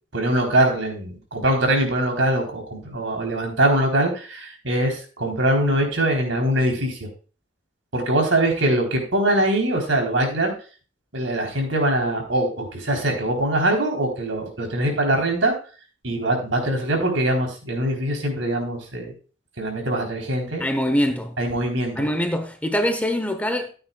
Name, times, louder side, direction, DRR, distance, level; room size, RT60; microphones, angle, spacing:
voice 1, 0.1-7.1 7.9-10.5 11.1-15.5 16.0-19.1 19.6-20.6 21.4-22.1, right 1 dB, 80° right, 3.6 m, -22 dB
voice 2, 20.6-21.4 22.0-23.7, equal, 5° left, 0.9 m, -23 dB
14.0 x 8.8 x 2.3 m
head